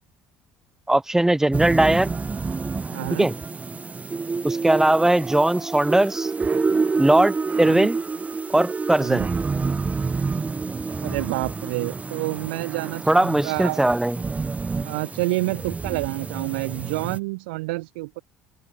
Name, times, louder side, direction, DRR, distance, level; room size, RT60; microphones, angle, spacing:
voice 1, 0.9-2.1 3.2-3.3 4.4-6.3 7.0-8.0 8.5-9.3 13.1-14.2, right 1 dB, 10° right, 2.6 m, -19 dB
sound 1, 1.5-17.2, right 4 dB, 25° right, 6.4 m, -28 dB
voice 2, 2.9-3.3 7.6-7.9 9.0-9.3 11.0-13.9 14.8-18.2, right 24 dB, 80° right, 5.1 m, -28 dB
open air
hypercardioid pair, 70°, 6 cm